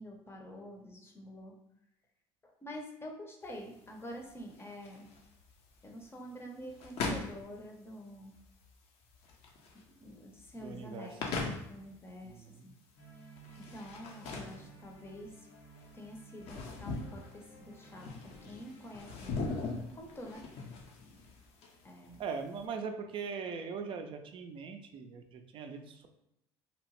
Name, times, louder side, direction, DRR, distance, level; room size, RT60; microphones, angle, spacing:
voice 1, 0.0-1.6 2.4-5.1 5.8-8.3 9.7-12.7 13.6-15.4 15.9-20.5 21.8-22.3, equal, 20° left, 1 dB, 0.6 m, -47 dB
sound 1, 3.4-22.6, left 3 dB, 60° left, 0.6 m, -42 dB
voice 2, 10.5-11.4 12.2-12.7 22.2-26.1, right 5 dB, 45° right, 6 dB, 0.4 m, -41 dB
sound 2, 13.0-19.5, right 3 dB, 85° left, 0.9 m, -56 dB
2.8 x 2.0 x 3.0 m, 0.81 s
supercardioid pair, 80°, 12 cm